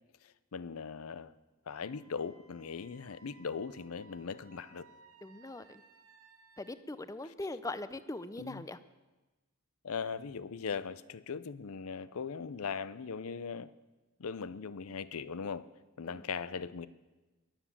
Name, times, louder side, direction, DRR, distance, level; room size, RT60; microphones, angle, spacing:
voice 1, 0.5-1.3 1.7-4.9 8.4-8.6 9.8-13.7 14.2-15.7 16.0-16.9, left 5 dB, 80° left, 17 dB, 0.6 m, -39 dB
Wind instrument woodwind instrument, 1.7-6.7, right 4 dB, 75° right, 1.4 m, -62 dB
voice 2, 5.2-5.8 6.6-8.8 16.0-16.2, left 2 dB, 15° left, 14 dB, 0.5 m, -41 dB
21.5 x 7.3 x 7.2 m, 1.1 s
head